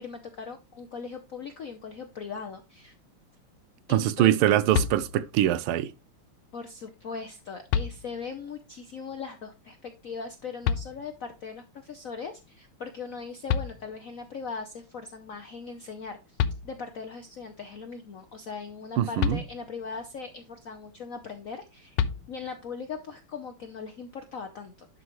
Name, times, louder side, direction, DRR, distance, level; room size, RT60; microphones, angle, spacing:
voice 1, 0.0-2.9 3.9-4.4 6.5-16.4 16.6-22.0 22.3-24.9, left 5 dB, 70° left, 0.8 m, -39 dB
voice 2, 3.9-5.9 19.0-19.4, right 12 dB, 80° right, 1.5 m, -23 dB
sound 1, 4.7-5.5 7.0-7.1 7.7-8.5 10.6-11.4 13.1-13.2 13.5-14.3 16.0-16.1 16.4-17.1 19.2-20.0 21.9-22.7, left 8 dB, 90° left, 1.5 m, -30 dB
11.0 x 5.4 x 3.0 m
omnidirectional pair, 2.4 m